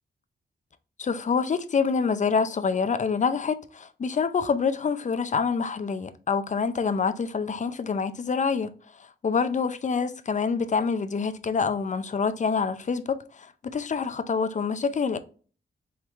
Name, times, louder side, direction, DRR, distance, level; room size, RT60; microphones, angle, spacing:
voice 1, 1.0-8.7 9.2-15.2, left 5 dB, 40° left, 0.5 m, -26 dB
4.5 x 3.6 x 3.0 m
wide cardioid pair, 95°, 19 cm